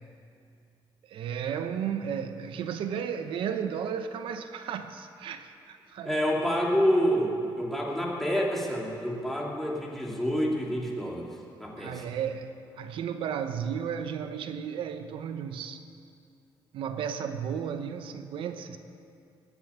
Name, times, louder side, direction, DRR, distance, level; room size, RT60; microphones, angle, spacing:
voice 1, 1.0-6.2 11.8-15.8 16.7-18.8, right 8 dB, 85° right, 8 dB, 0.8 m, -34 dB
voice 2, 6.0-11.3 11.6-12.0, equal, 5° left, -3 dB, 2.3 m, -28 dB
20.0 x 7.2 x 8.6 m, 2.5 s
cardioid pair, 150°, 9 cm